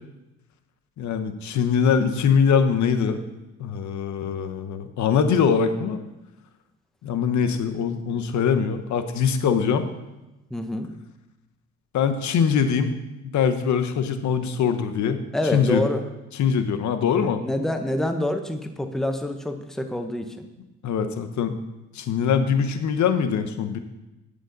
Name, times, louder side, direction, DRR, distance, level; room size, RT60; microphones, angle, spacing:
voice 1, 1.0-3.2 3.6-6.0 7.0-9.9 11.9-13.0 13.3-15.2 15.5-15.8 16.4-17.4 20.8-21.6 21.9-23.8, left 6 dB, 70° left, 8 dB, 0.9 m, -22 dB
voice 2, 10.5-10.9 15.3-16.0 17.4-20.5, left 1 dB, ahead, 6 dB, 0.8 m, -27 dB
9.4 x 8.0 x 3.9 m, 0.99 s
cardioid pair, 90°, 30 cm